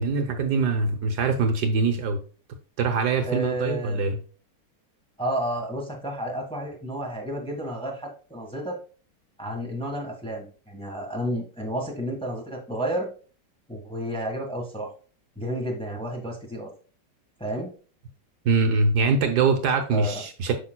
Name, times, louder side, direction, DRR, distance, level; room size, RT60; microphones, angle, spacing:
voice 1, 0.0-2.2 2.8-4.2 18.4-20.5, right 4 dB, 70° right, 6 dB, 1.4 m, -23 dB
voice 2, 3.2-4.0 5.2-8.8 9.4-13.1 13.7-14.9 15.3-16.7 17.4-17.7 19.9-20.2, right 1 dB, 5° left, 0 dB, 1.3 m, -31 dB
8.5 x 5.8 x 2.3 m, 0.39 s
omnidirectional pair, 1.9 m